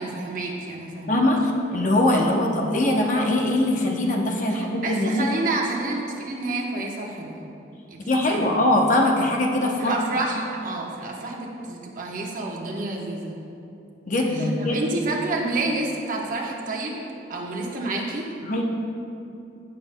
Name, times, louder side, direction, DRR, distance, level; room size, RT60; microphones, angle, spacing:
voice 1, 0.0-1.2 2.2-2.3 4.5-7.4 7.9-8.5 9.6-13.4 14.3-18.3, right 2 dB, 45° right, -1 dB, 1.1 m, -29 dB
voice 2, 1.1-5.3 8.1-10.0 14.1-14.8 18.4-18.6, left 1 dB, 45° left, 0 dB, 0.8 m, -22 dB
16.5 x 6.6 x 2.2 m, 2.7 s
head